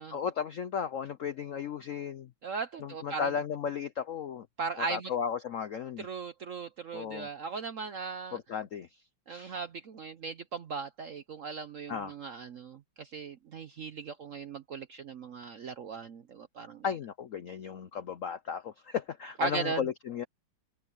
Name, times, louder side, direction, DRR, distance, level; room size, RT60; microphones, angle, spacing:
voice 1, 0.1-2.3 2.8-4.5 4.8-6.1 6.9-7.3 8.3-8.9 9.3-9.5 11.9-12.1 16.8-20.2, left 7 dB, 70° left, 0.7 m, -35 dB
voice 2, 2.4-3.3 4.6-5.1 6.0-8.4 9.3-16.8 19.4-19.9, right 5 dB, 60° right, 0.8 m, -38 dB
open air
omnidirectional pair, 2.2 m